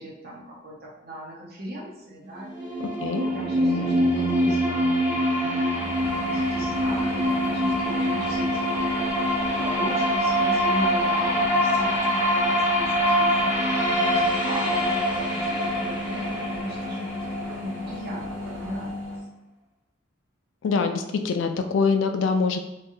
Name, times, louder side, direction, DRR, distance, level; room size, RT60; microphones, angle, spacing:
voice 1, 0.0-17.3 17.5-19.1, right 1 dB, 55° right, -5 dB, 0.9 m, -38 dB
sound 1, 2.4-18.3, equal, 15° right, 1.1 m, -24 dB
voice 2, 2.8-3.3 20.6-22.6, left 4 dB, 75° left, 6 dB, 0.3 m, -24 dB
sound 2, 5.7-19.2, left 2 dB, 85° right, 0.7 m, -35 dB
3.2 x 2.3 x 2.7 m, 0.91 s
head